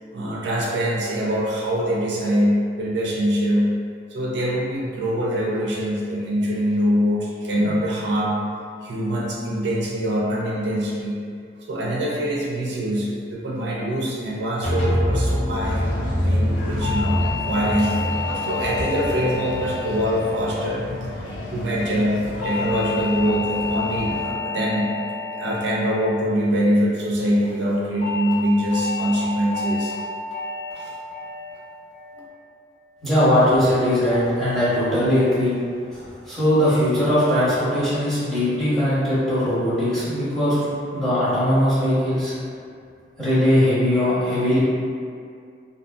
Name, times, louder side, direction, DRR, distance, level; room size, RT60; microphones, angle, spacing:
voice 1, 0.0-3.7 4.1-8.4 8.8-11.2 11.7-20.9 21.5-24.9 25.3-29.9 30.7-31.0 32.1-32.2, equal, 70° right, -4 dB, 0.4 m, -24 dB
sound 1, 14.6-20.3, equal, 30° left, 0.7 m, -25 dB
sound 2, 15.6-24.3, left 1 dB, 85° left, 0.5 m, -33 dB
sound 3, 16.8-21.3 22.4-26.9 28.0-28.3 28.7-29.1 29.5-29.9 30.3-30.7 31.1-31.5 31.9-32.3, left 4 dB, 70° left, 1.2 m, -31 dB
voice 2, 33.0-35.5 35.9-40.7 40.9-42.3 43.2-44.6, equal, ahead, -14 dB, 1.0 m, -20 dB
2.6 x 2.6 x 2.3 m, 2.3 s
head